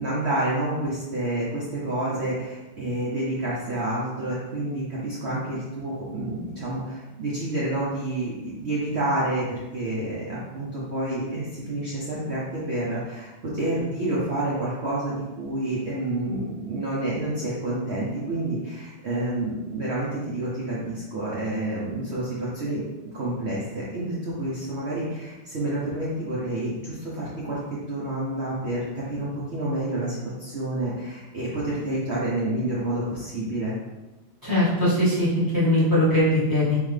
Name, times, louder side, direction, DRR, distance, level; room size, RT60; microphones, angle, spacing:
voice 1, 0.0-9.5 9.7-22.8 23.1-33.7, right 1 dB, 85° right, -7 dB, 0.5 m, -29 dB
voice 2, 34.4-36.8, left 1 dB, 15° right, -9 dB, 0.7 m, -21 dB
3.7 x 3.2 x 3.2 m, 1.1 s
omnidirectional pair, 2.2 m